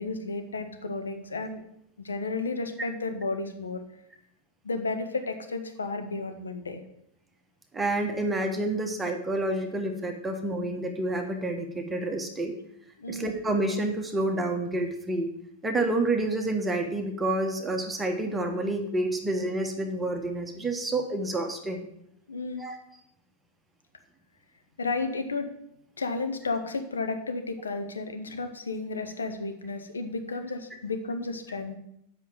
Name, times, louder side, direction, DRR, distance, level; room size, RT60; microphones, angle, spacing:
voice 1, 0.0-1.6 2.0-3.8 4.6-6.8 13.0-13.4 22.3-22.6 24.8-25.5 26.0-31.8, left 3 dB, 75° left, 6 dB, 1.1 m, -32 dB
voice 2, 7.7-12.5 13.1-15.3 15.6-21.9 22.6-22.8, right 2 dB, 10° right, 3 dB, 1.2 m, -29 dB
7.8 x 5.8 x 7.4 m, 0.77 s
figure-of-eight pair, 90°, 0 cm